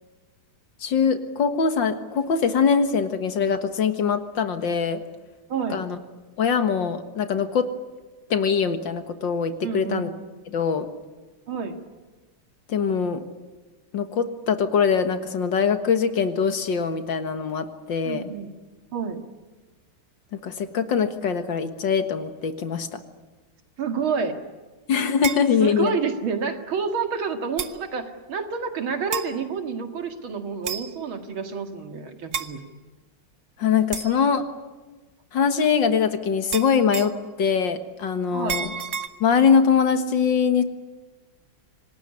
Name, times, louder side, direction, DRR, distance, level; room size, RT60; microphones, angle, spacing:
voice 1, 0.8-5.0 5.7-6.0 6.4-7.7 8.3-10.1 10.5-10.9 12.7-13.2 13.9-18.2 20.3-23.0 24.9-25.9 33.6-34.4 35.3-38.7 39.2-40.6, left 6 dB, 65° left, 9 dB, 2.2 m, -22 dB
voice 2, 9.6-10.2 11.5-11.8 18.0-18.5 18.9-19.2 23.8-24.4 25.6-32.6 38.3-38.6, right 5 dB, 75° right, 6 dB, 2.7 m, -29 dB
sound 1, 25.2-25.5 26.6-26.7 27.6-27.8 29.1-29.3 30.6-31.0 32.3-32.5 33.9-34.2 36.5-37.2 38.5-39.1, right 7 dB, 45° right, 1.1 m, -30 dB
26.0 x 19.0 x 9.7 m, 1.3 s
omnidirectional pair, 2.3 m